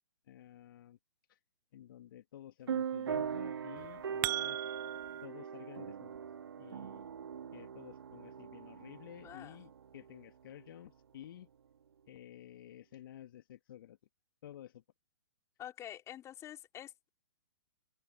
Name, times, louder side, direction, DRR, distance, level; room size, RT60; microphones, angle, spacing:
voice 1, 0.3-1.0 1.3-1.4 1.7-4.6 5.2-6.2 6.6-7.1 7.5-11.5 12.1-14.0 14.4-14.8, left 11 dB, 50° left, 2.6 m, -52 dB
sound 1, 2.7-10.8, right 7 dB, 60° right, 3.1 m, -41 dB
sound 2, 3.8-5.3, right 16 dB, 20° right, 0.7 m, -37 dB
voice 2, 9.2-9.6 15.6-17.1, left 11 dB, 20° left, 4.5 m, -47 dB
figure-of-eight pair, 120°, 15 cm